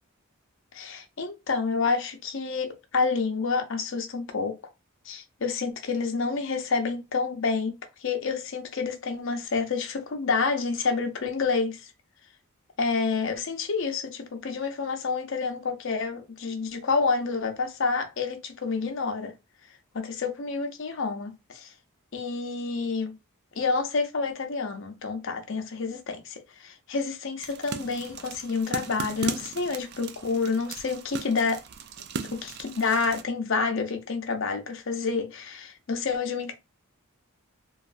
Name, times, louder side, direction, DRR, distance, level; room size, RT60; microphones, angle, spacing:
voice 1, 0.7-4.6 5.1-11.9 12.8-19.3 19.9-21.7 22.1-23.1 23.6-31.6 32.3-36.5, left 4 dB, 60° left, 0.6 m, -28 dB
sound 1, 27.4-33.2, right 5 dB, 50° right, 0.3 m, -38 dB
3.0 x 2.4 x 2.5 m
head